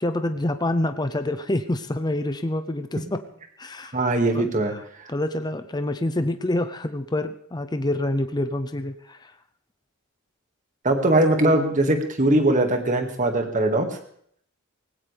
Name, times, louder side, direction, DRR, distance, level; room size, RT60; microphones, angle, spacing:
voice 1, 0.0-3.2 3.6-4.1 4.3-4.5 5.1-9.3, left 1 dB, 20° left, 9 dB, 0.7 m, -27 dB
voice 2, 3.9-5.1 10.8-13.9, right 1 dB, 40° right, 5 dB, 2.0 m, -21 dB
18.5 x 16.5 x 3.4 m, 0.65 s
head